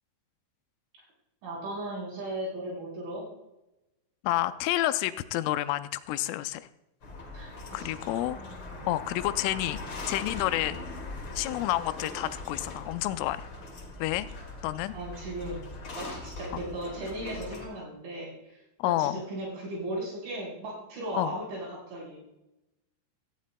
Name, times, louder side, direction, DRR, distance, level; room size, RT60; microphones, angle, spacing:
voice 1, 1.4-3.3 7.3-8.2 8.7-9.0 14.9-15.7 15.9-22.2, right 1 dB, 70° right, -5 dB, 6.3 m, -37 dB
voice 2, 4.2-6.7 7.7-8.4 8.9-9.8 10.1-11.0 11.4-13.5 14.0-14.3 14.6-14.9 18.8-19.2 21.1-21.3, left 15 dB, 90° left, 12 dB, 3.1 m, -29 dB
sound 1, 7.0-17.7, left 2 dB, 55° left, 1.2 m, -41 dB
17.5 x 15.0 x 2.2 m, 0.93 s
omnidirectional pair, 5.6 m